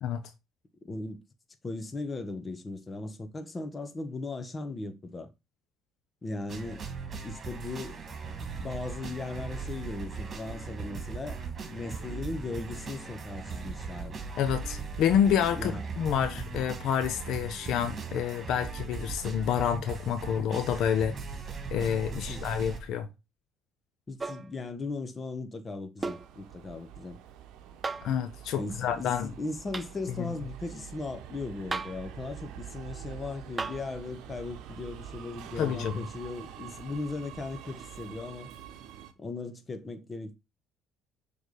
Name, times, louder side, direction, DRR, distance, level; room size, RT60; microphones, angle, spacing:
voice 1, 0.8-1.2 1.6-5.3 6.2-6.9 7.2-8.0 8.6-14.1 15.6-15.8 16.4-16.6 22.1-22.5 24.1-27.2 28.5-38.5 39.2-40.3, left 3 dB, 30° left, 1.3 m, -38 dB
sound 1, 6.5-22.8, right 5 dB, 40° right, 2.1 m, -39 dB
voice 2, 14.4-21.1 21.7-23.1 28.0-29.3 35.6-36.0, left 8 dB, 70° left, 0.7 m, -28 dB
sound 2, 24.2-24.5 26.0-26.3 27.8-28.2 29.7-29.9 31.7-32.1 33.6-33.9 35.6-35.7, right 3 dB, 20° right, 0.6 m, -35 dB
Subway metro underground, 26.0-39.1, right 10 dB, 70° right, 0.8 m, -46 dB
6.4 x 3.5 x 5.0 m
hypercardioid pair, 60°, 0 cm